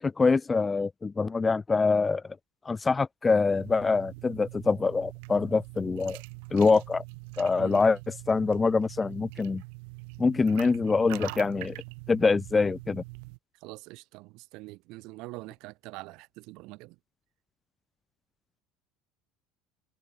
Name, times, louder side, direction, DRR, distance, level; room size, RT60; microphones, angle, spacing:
voice 1, 0.0-2.2 2.7-6.2 6.5-7.0 7.4-8.0 8.3-9.6 10.2-11.8 12.1-13.0, left 4 dB, 15° left, 0.3 m, -25 dB
sound 1, 3.4-13.4, right 33 dB, 75° right, 6.2 m, -43 dB
voice 2, 7.6-7.9 13.6-17.0, right 23 dB, 55° right, 1.3 m, -44 dB
cardioid pair, 170°, 0 cm